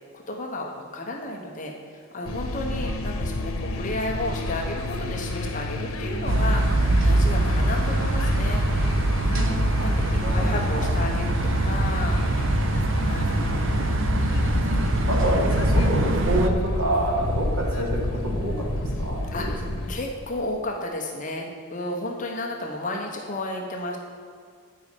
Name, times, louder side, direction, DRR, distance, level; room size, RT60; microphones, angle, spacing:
voice 1, 0.1-8.6 9.3-12.2 13.0-13.9 19.3-24.0, left 1 dB, 35° left, 1 dB, 1.0 m, -33 dB
sound 1, 2.2-19.9, left 1 dB, 85° left, 1.1 m, -30 dB
sound 2, 6.3-16.5, right 1 dB, 60° right, 0.7 m, -23 dB
voice 2, 9.8-11.2 15.1-19.5, right 1 dB, 90° right, -2 dB, 2.5 m, -28 dB
10.0 x 5.4 x 8.3 m, 2.1 s
head